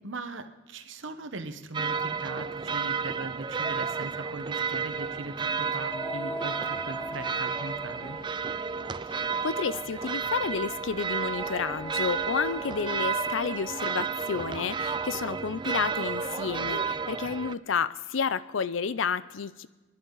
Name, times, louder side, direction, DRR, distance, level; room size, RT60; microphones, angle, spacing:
voice 1, 0.0-8.2, right 3 dB, 80° right, 8 dB, 1.1 m, -39 dB
sound 1, 1.7-17.5, right 6 dB, 25° right, 0.4 m, -32 dB
sound 2, 5.8-10.5 11.3-16.0, equal, 10° left, 1.0 m, -42 dB
voice 2, 9.1-19.7, left 6 dB, 90° left, 16 dB, 0.6 m, -31 dB
27.5 x 11.0 x 4.0 m, 1.2 s
head